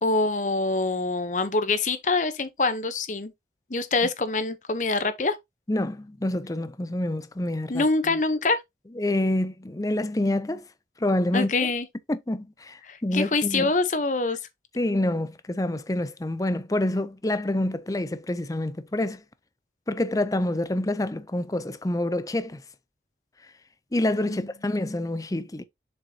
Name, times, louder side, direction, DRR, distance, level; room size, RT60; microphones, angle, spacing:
voice 1, 0.0-3.3 3.7-5.4 7.7-8.6 11.3-11.8 12.8-14.4 24.3-24.4, left 3 dB, 45° left, 0.9 m, -25 dB
voice 2, 5.7-8.2 9.0-10.6 11.0-11.5 12.1-13.7 14.8-19.2 19.9-22.6 23.9-25.6, left 1 dB, 20° left, 0.5 m, -27 dB
7.1 x 5.3 x 2.8 m
head